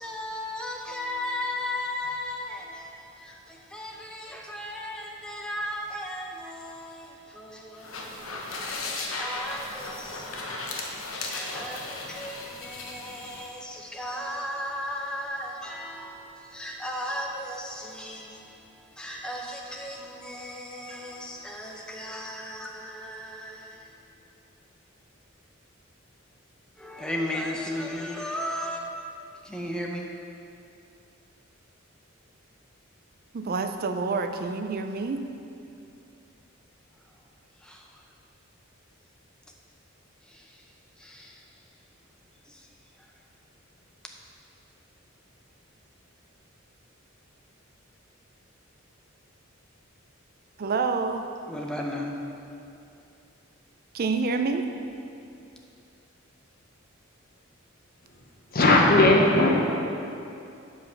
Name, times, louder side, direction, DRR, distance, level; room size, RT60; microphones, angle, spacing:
voice 1, 0.0-2.6 3.7-6.9 9.0-10.0 11.3-11.8 12.2-12.3 12.6-16.1 16.5-18.2 19.0-20.0 20.2-23.5 26.8-28.8 29.5-30.0 51.5-52.1, left 1 dB, 5° left, 0.7 m, -34 dB
sound 1, 7.7-13.5, left 3 dB, 75° left, 1.0 m, -36 dB
voice 2, 33.3-35.2 50.6-51.3 53.9-54.7, right 4 dB, 45° right, 0.4 m, -27 dB
voice 3, 58.5-59.6, left 2 dB, 45° left, 1.0 m, -18 dB
7.6 x 5.5 x 5.8 m
head